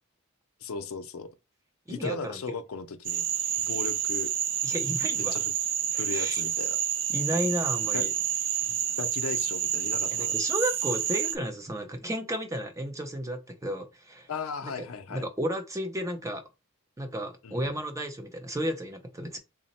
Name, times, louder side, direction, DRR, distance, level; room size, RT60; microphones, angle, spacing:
voice 1, 0.6-1.3 1.9-3.2 3.7-4.3 5.2-5.5 5.9-6.8 7.9-8.0 9.0-10.3 14.3-15.3 17.4-17.8, left 5 dB, 80° left, 0.5 m, -36 dB
voice 2, 1.9-2.4 4.6-5.4 6.1-6.4 7.1-8.1 10.1-14.3 14.6-16.4 17.0-19.4, equal, 15° right, 0.6 m, -33 dB
Frog, 3.0-11.4, right 9 dB, 60° right, 0.5 m, -29 dB
3.8 x 2.1 x 4.1 m
head